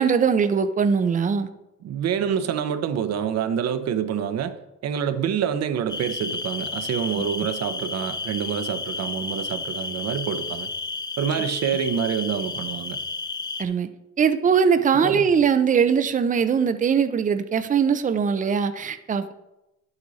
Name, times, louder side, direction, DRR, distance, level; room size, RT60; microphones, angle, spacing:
voice 1, 0.0-1.5 13.6-13.9 14.2-19.3, right 6 dB, 25° right, 10 dB, 0.6 m, -21 dB
voice 2, 1.8-4.5 4.8-10.7 11.2-13.0 15.0-15.2, right 8 dB, 60° right, 9 dB, 1.0 m, -27 dB
sound 1, 5.9-13.6, left 3 dB, 15° left, 0.6 m, -32 dB
11.0 x 8.0 x 4.1 m, 0.94 s
cardioid pair, 115°, 29 cm